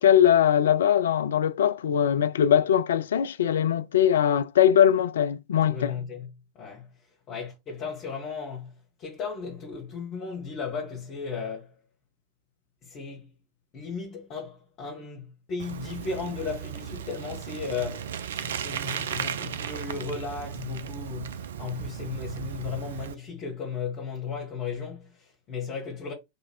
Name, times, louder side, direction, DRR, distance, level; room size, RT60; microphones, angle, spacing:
voice 1, 0.0-5.9, left 9 dB, 65° left, 0.4 m, -21 dB
voice 2, 5.6-6.3 6.5-6.9 7.3-11.7 12.8-13.3 13.7-26.1, left 5 dB, 35° left, 1.5 m, -35 dB
Bicycle, 15.6-23.1, right 9 dB, 60° right, 0.4 m, -36 dB
3.4 x 2.9 x 4.5 m
figure-of-eight pair, 90°, 0 cm